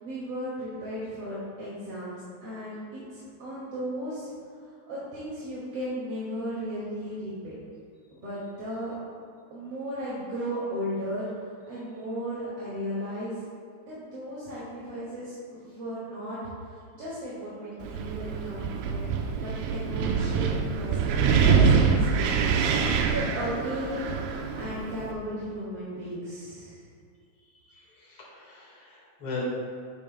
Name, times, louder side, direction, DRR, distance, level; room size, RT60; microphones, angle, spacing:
voice 1, 0.0-4.3 4.9-7.6 8.1-8.9 9.5-11.2 11.7-13.3 13.8-16.4 16.9-19.1 19.3-22.4 23.0-24.2 24.5-26.8, equal, 45° right, -10 dB, 2.8 m, -35 dB
Wind, 17.8-25.1, right 5 dB, 90° right, 2.6 m, -25 dB
voice 2, 28.0-29.4, left 4 dB, 50° left, -4 dB, 1.9 m, -38 dB
11.5 x 11.0 x 2.2 m, 2.2 s
omnidirectional pair, 4.5 m